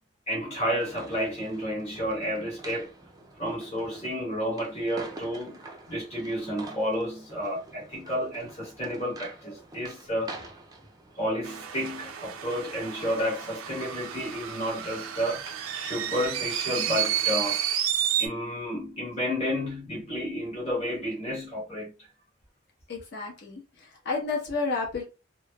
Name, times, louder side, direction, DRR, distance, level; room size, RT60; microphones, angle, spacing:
voice 1, 0.3-2.9 3.4-5.6 5.9-10.4 11.2-15.4 15.7-17.6 18.2-22.1, equal, 30° left, 1.2 m, -31 dB
sound 1, 0.7-17.6, right 2 dB, 20° right, 0.4 m, -48 dB
sound 2, 11.4-18.3, right 10 dB, 85° right, 0.4 m, -31 dB
voice 2, 22.9-25.0, left 4 dB, 55° left, 1.0 m, -31 dB
3.1 x 2.0 x 2.3 m
head